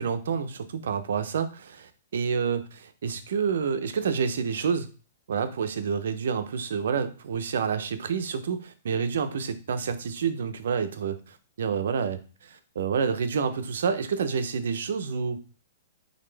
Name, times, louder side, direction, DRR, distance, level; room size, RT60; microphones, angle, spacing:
voice 1, 0.0-4.9 5.3-15.4, right 6 dB, 80° right, 9 dB, 0.6 m, -28 dB
4.0 x 3.4 x 3.2 m, 0.36 s
hypercardioid pair, 150°, 0 cm